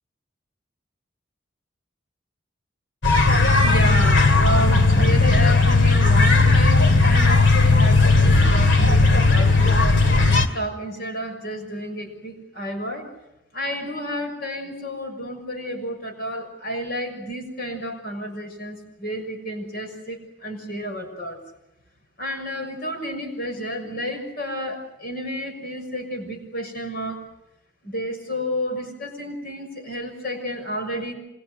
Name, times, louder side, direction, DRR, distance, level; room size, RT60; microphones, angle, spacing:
sound 1, 3.0-10.5, left 3 dB, 70° left, 2.6 m, -16 dB
voice 1, 3.3-10.0 10.5-13.1 13.5-21.4 22.2-27.2 27.8-31.1, equal, 50° left, 5 dB, 6.5 m, -31 dB
27.5 x 26.5 x 6.6 m, 0.87 s
head